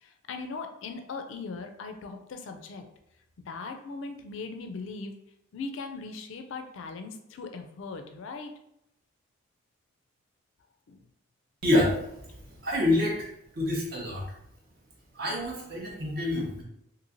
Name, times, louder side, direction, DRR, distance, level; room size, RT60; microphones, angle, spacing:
voice 1, 0.0-2.9 3.5-5.1 5.5-8.5 10.9-11.0, left 4 dB, 65° left, 6 dB, 0.3 m, -39 dB
voice 2, 11.6-12.2 12.6-13.2 13.6-14.2 15.1-16.6, left 1 dB, 45° right, -3 dB, 0.6 m, -26 dB
3.0 x 2.6 x 2.5 m, 0.79 s
head